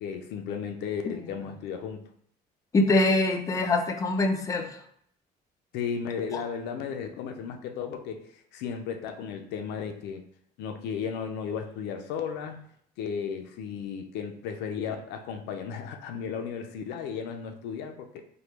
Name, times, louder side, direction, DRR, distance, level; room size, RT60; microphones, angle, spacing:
voice 1, 0.0-2.1 5.7-10.2 10.6-12.6 13.0-18.2, left 7 dB, 90° left, 5 dB, 0.4 m, -34 dB
voice 2, 2.7-4.7, left 2 dB, 20° left, 4 dB, 0.4 m, -24 dB
3.0 x 2.2 x 3.3 m, 0.67 s
cardioid pair, 110°, 17 cm